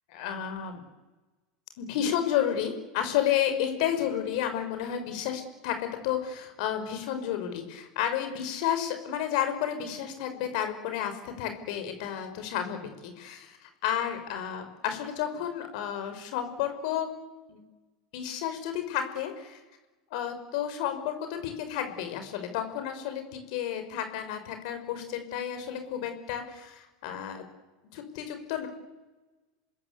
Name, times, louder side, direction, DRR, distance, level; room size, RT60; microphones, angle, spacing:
voice 1, 0.1-0.8 1.8-17.1 17.5-17.6 18.1-19.6 20.1-27.4 27.9-28.7, left 10 dB, 65° left, 7 dB, 5.1 m, -31 dB
27.0 x 20.5 x 8.2 m, 1.1 s
supercardioid pair, 140°, 4 cm